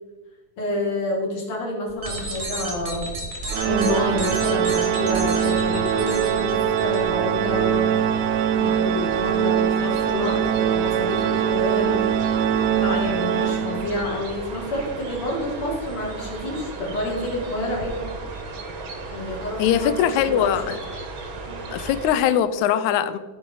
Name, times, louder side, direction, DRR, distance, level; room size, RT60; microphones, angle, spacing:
voice 1, 0.6-3.0 3.7-7.9 8.5-12.0 12.7-18.1 19.1-20.5 21.5-21.7, left 1 dB, 45° left, -1 dB, 2.7 m, -28 dB
sound 1, 1.9-7.0, right 1 dB, 35° right, 1.4 m, -32 dB
sound 2, 3.5-22.2, right 3 dB, 55° right, 1.6 m, -35 dB
Organ, 3.5-14.2, right 9 dB, 80° right, 1.9 m, -22 dB
voice 2, 19.6-20.8 21.7-23.2, left 10 dB, 80° left, 13 dB, 1.9 m, -21 dB
15.0 x 5.0 x 3.8 m, 1.3 s
omnidirectional pair, 3.6 m